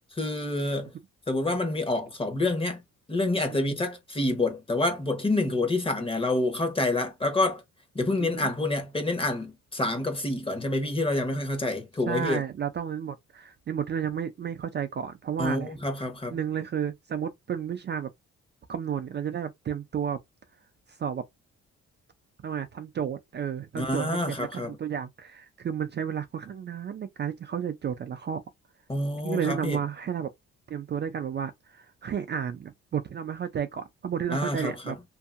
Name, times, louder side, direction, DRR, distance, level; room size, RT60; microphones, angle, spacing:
voice 1, 0.1-0.9 1.3-2.8 3.1-7.6 7.9-12.4 15.4-16.4 23.7-24.8 28.9-29.8 34.3-34.9, left 2 dB, 20° left, 1.0 m, -28 dB
voice 2, 8.2-8.5 12.1-15.7 16.3-18.1 18.7-20.2 21.0-21.2 22.4-28.4 29.2-30.3 30.7-35.0, right 8 dB, 35° right, 0.4 m, -32 dB
2.7 x 2.5 x 2.4 m
cardioid pair, 90°, 30 cm